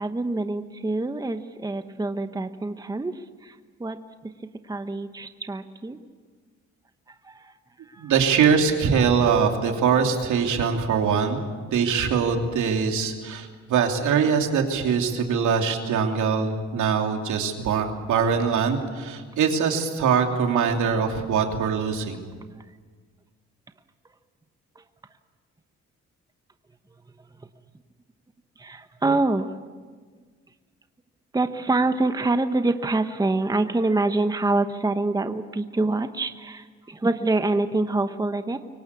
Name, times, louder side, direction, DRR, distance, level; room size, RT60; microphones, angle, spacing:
voice 1, 0.0-3.1 3.4-4.0 4.7-6.0 7.3-7.5 7.9-8.1 28.6-29.5 31.3-38.6, right 2 dB, 15° right, 9 dB, 1.1 m, -25 dB
voice 2, 8.0-11.4 11.7-22.2, right 6 dB, 75° right, 3 dB, 3.1 m, -23 dB
24.0 x 18.0 x 8.5 m, 1.5 s
cardioid pair, 90°, 30 cm